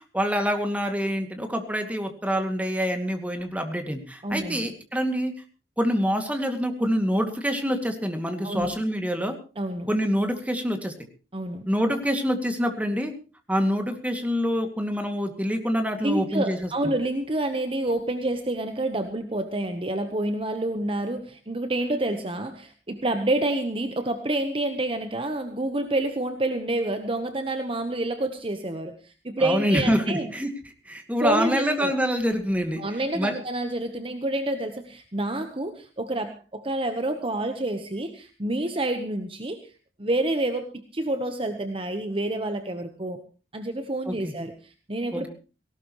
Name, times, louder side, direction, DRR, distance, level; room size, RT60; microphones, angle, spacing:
voice 1, 0.0-5.3 5.8-9.4 9.9-10.9 11.7-13.1 13.5-16.9 29.4-30.5 30.9-32.8 33.1-33.3 44.1-44.3 45.1-45.3, equal, 10° right, 5 dB, 2.3 m, -26 dB
voice 2, 4.2-4.7 8.4-8.8 9.6-9.9 11.3-11.7 16.0-30.3 31.2-31.9 32.8-39.7 40.0-43.2 43.5-45.3, right 1 dB, 30° right, 7 dB, 1.1 m, -28 dB
18.5 x 18.0 x 3.1 m, 0.34 s
head